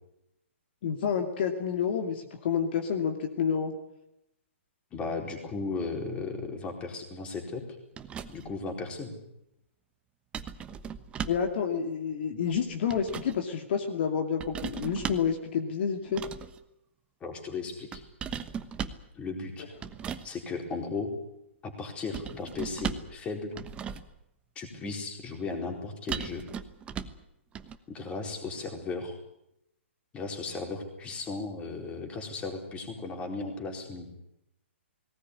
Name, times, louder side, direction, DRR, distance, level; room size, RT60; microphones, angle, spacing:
voice 1, 0.8-3.7 11.3-16.2, left 7 dB, 55° left, 4 dB, 2.6 m, -29 dB
voice 2, 4.9-7.6 8.3-9.1 17.2-18.0 19.1-19.7 20.2-21.1 21.6-23.5 24.6-26.4 27.9-29.2 30.1-34.1, left 4 dB, 15° left, 3 dB, 4.4 m, -36 dB
sound 1, 8.0-8.6 10.3-11.5 12.5-13.4 14.4-15.4 16.1-16.6 17.9-19.1 19.8-20.3 22.1-23.2 23.5-24.2 26.1-27.2 27.5-27.8, right 7 dB, 15° right, 1.1 m, -37 dB
18.5 x 18.5 x 9.8 m, 0.82 s
hypercardioid pair, 140°, 7 cm